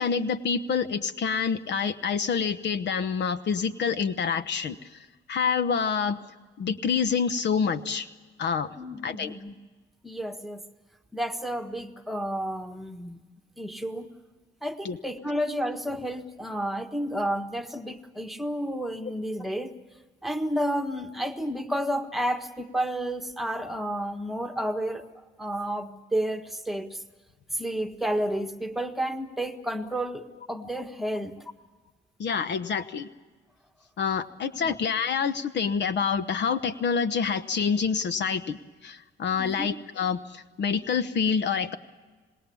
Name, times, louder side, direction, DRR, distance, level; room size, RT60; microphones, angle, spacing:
voice 1, 0.0-5.0 5.3-6.2 6.6-8.1 8.4-8.7 9.0-9.3 14.8-15.0 32.2-33.1 34.0-41.8, left 6 dB, 60° left, 12 dB, 1.1 m, -27 dB
voice 2, 8.8-9.5 10.0-10.6 11.1-13.2 13.6-14.1 14.6-19.7 20.2-25.0 25.4-27.0 27.5-31.5 34.5-34.7 39.4-39.7, right 1 dB, ahead, 5 dB, 1.6 m, -31 dB
27.0 x 20.0 x 7.1 m, 1.3 s
cardioid pair, 90°, 20 cm